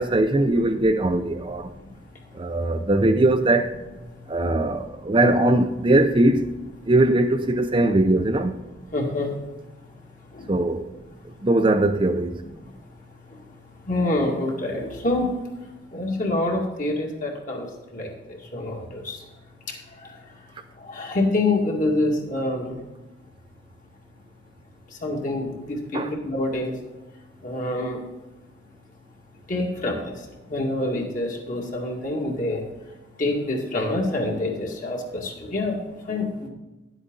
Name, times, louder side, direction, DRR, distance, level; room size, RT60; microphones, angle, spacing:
voice 1, 0.0-1.7 2.3-3.7 4.3-6.5 6.8-8.6 10.5-10.9 11.4-12.4 25.9-26.2, right 2 dB, 30° right, 0.6 m, -20 dB
voice 2, 8.9-9.4 10.3-10.5 12.6-12.7 13.3-13.4 13.8-15.3 15.9-19.2 19.7-20.2 20.8-22.8 25.0-26.8 27.4-28.0 29.5-32.6 33.2-35.8 36.1-36.5, left 2 dB, 45° left, 2.2 m, -26 dB
11.0 x 8.1 x 3.9 m
head